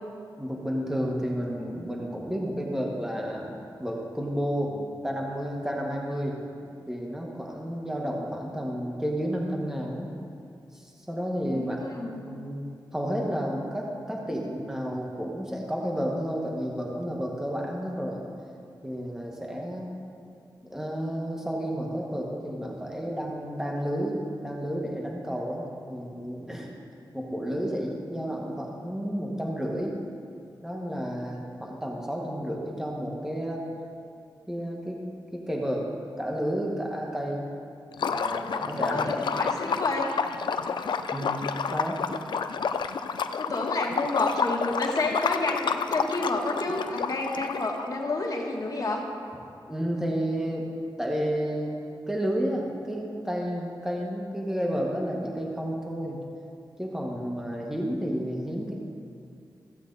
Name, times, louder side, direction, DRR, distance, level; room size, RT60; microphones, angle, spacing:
voice 1, 0.4-3.5 3.8-6.4 6.9-10.1 10.7-11.8 12.1-12.7 12.9-18.2 18.8-19.9 20.6-26.7 27.1-30.0 30.6-33.6 34.5-35.0 35.3-35.9 36.2-37.4 38.0-39.1 41.1-41.5 41.7-42.0 49.7-50.7 51.0-56.2 56.8-58.7, equal, 5° right, -2 dB, 1.5 m, -31 dB
voice 2, 11.5-12.2 38.9-40.1 43.4-49.0, left 2 dB, 50° left, 0 dB, 1.5 m, -30 dB
Liquid, 37.9-47.8, left 6 dB, 75° left, 0.4 m, -29 dB
15.0 x 8.1 x 4.1 m, 2.4 s
wide cardioid pair, 85°, 8 cm